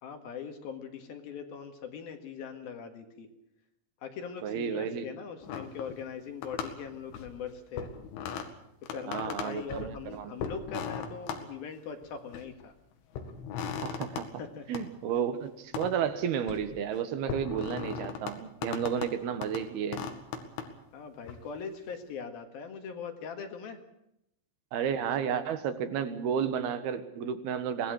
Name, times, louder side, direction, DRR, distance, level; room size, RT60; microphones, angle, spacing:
voice 1, 0.0-3.3 4.0-7.9 8.9-12.7 14.4-14.8 18.6-18.8 20.9-23.8, left 6 dB, 60° left, 6 dB, 3.2 m, -41 dB
voice 2, 4.4-5.1 9.1-10.4 13.8-14.3 14.7-20.1 24.7-27.9, right 8 dB, 65° right, 10 dB, 3.0 m, -32 dB
sound 1, 5.4-6.2 6.4-7.4 7.7-8.5 8.8-10.0 10.4-11.4 12.0-12.6 13.1-14.3 14.8-14.9 15.7-15.9 16.2-16.7 17.3-18.4 18.6-19.1 19.4-19.6 19.9-20.7 21.2-21.4, left 6 dB, 85° left, 4.5 m, -38 dB
25.0 x 18.5 x 6.5 m, 0.82 s
omnidirectional pair, 5.5 m